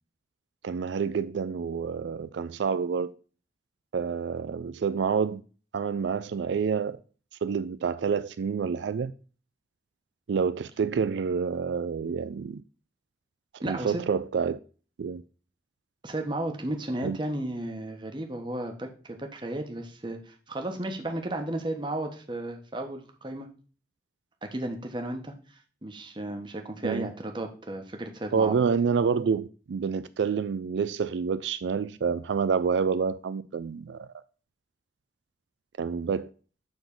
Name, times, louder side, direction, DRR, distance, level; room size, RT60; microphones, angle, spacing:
voice 1, 0.6-3.1 3.9-5.4 5.7-7.0 7.4-9.1 10.3-12.6 13.7-14.6 15.0-15.2 17.0-17.2 26.8-27.1 28.3-34.1 35.8-36.3, right 6 dB, 80° right, 0.4 m, -28 dB
voice 2, 13.6-14.0 16.0-23.5 24.4-28.6, right 1 dB, 25° right, 1.1 m, -34 dB
7.0 x 3.9 x 5.4 m
head